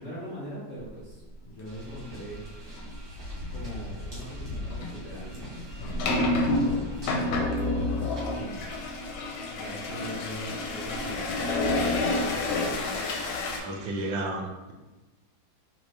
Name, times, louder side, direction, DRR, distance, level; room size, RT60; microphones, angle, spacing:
voice 1, 0.0-2.4 3.5-8.9 9.5-13.1, equal, 60° left, -8 dB, 0.7 m, -42 dB
sound 1, 1.6-14.1, left 1 dB, 45° right, 0.8 m, -44 dB
sound 2, 2.8-2.9 3.4-3.6 4.7-13.6, left 2 dB, 85° left, 1.3 m, -29 dB
voice 2, 13.6-14.7, right 2 dB, 75° right, 2 dB, 1.2 m, -32 dB
3.2 x 2.7 x 3.2 m, 1.1 s
omnidirectional pair, 2.1 m